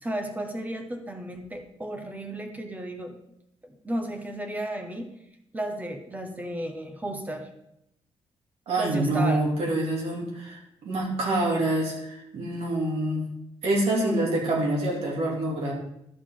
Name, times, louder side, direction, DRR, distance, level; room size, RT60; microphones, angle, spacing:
voice 1, 0.0-3.2 3.6-5.1 5.5-7.5 8.8-9.5 13.9-14.3, right 1 dB, 15° right, 5 dB, 1.0 m, -33 dB
voice 2, 8.7-13.2 13.6-15.7, right 1 dB, 85° right, -2 dB, 2.6 m, -26 dB
11.5 x 7.0 x 3.8 m, 0.79 s
wide cardioid pair, 160°, 10 cm